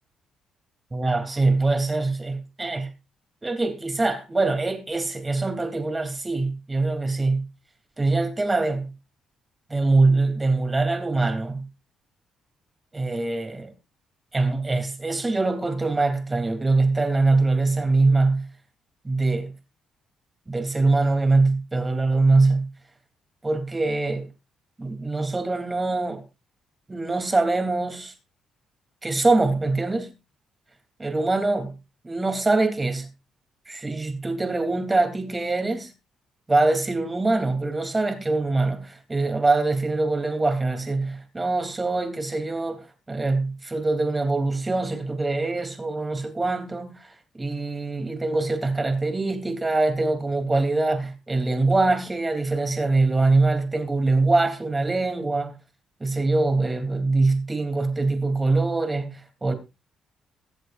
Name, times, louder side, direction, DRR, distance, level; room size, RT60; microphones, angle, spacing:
voice 1, 0.9-2.9 3.4-7.4 8.0-8.9 9.7-11.6 12.9-13.7 14.3-18.5 19.0-19.5 20.5-22.7 23.4-24.3 24.8-26.2 26.9-28.1 29.0-30.1 31.0-31.7 32.0-33.1 33.7-35.9 36.5-55.5 56.0-59.5, right 3 dB, 20° right, 3.3 m, -23 dB
22.5 x 7.7 x 2.6 m
cardioid pair, 90°, 0 cm